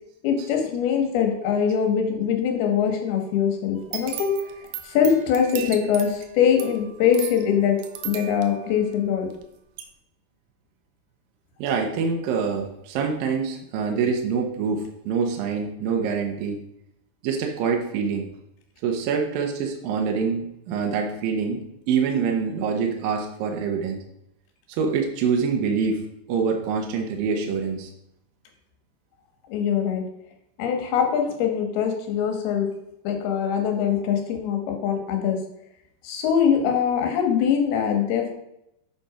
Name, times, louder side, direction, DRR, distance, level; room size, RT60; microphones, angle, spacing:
voice 1, 0.2-4.3 4.8-7.8 8.0-9.3 29.5-30.1 30.6-32.7 33.0-35.4 36.0-38.3, left 8 dB, 70° left, 4 dB, 3.2 m, -22 dB
sound 1, 3.8-9.4 9.8-9.9, right 10 dB, 90° right, 3.0 m, -37 dB
voice 2, 11.6-16.6 17.2-18.3 18.8-24.0 24.7-26.0 26.3-27.9, right 5 dB, 70° right, 2 dB, 2.3 m, -25 dB
8.1 x 6.1 x 5.0 m, 0.81 s
omnidirectional pair, 4.9 m